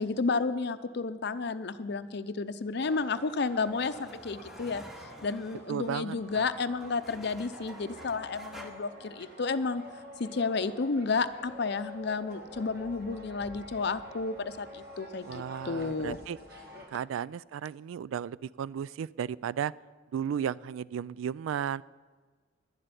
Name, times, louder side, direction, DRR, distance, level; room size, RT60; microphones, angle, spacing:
voice 1, 0.0-4.8 5.2-9.8 10.2-16.2, left 4 dB, 60° left, 12 dB, 0.6 m, -31 dB
sound 1, 2.8-16.9, equal, 55° right, 1.7 m, -48 dB
sound 2, 2.9-8.7, equal, ahead, 0.9 m, -51 dB
voice 2, 5.7-6.4 15.2-16.4 16.9-19.7 20.1-21.8, right 8 dB, 90° right, 21 dB, 0.3 m, -34 dB
11.5 x 7.6 x 9.6 m, 1.4 s
head